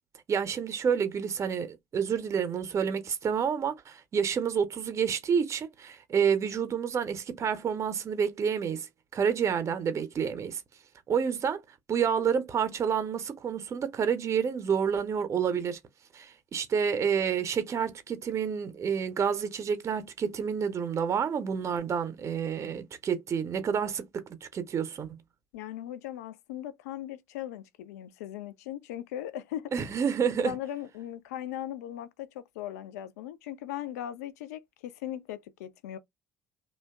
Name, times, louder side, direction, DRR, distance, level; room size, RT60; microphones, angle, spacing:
voice 1, 0.3-10.6 11.1-11.6 11.9-15.8 16.1-25.2 29.7-30.5, right 7 dB, 35° right, 0.6 m, -29 dB
voice 2, 25.5-29.9 30.4-36.0, left 12 dB, 75° left, 0.3 m, -39 dB
2.7 x 2.2 x 2.2 m
figure-of-eight pair, 55°, 9 cm